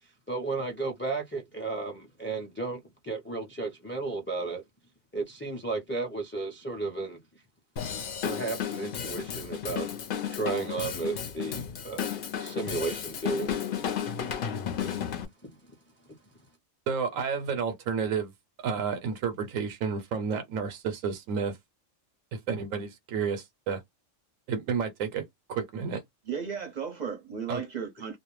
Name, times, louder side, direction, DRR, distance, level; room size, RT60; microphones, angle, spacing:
voice 1, 0.0-4.6 5.1-7.2 7.9-9.9 10.3-12.1 12.4-13.5 14.1-15.1 15.4-15.5 16.0-16.3, right 3 dB, 15° left, 0.4 m, -34 dB
Drum kit / Drum, 7.8-15.3, left 8 dB, 55° left, 0.6 m, -33 dB
voice 2, 16.9-18.3 18.6-21.6 22.3-23.8 24.5-26.0 27.5-27.6, right 6 dB, 90° right, 1.0 m, -31 dB
voice 3, 26.3-28.2, right 6 dB, 50° right, 0.6 m, -35 dB
2.4 x 2.1 x 3.0 m
omnidirectional pair, 1.3 m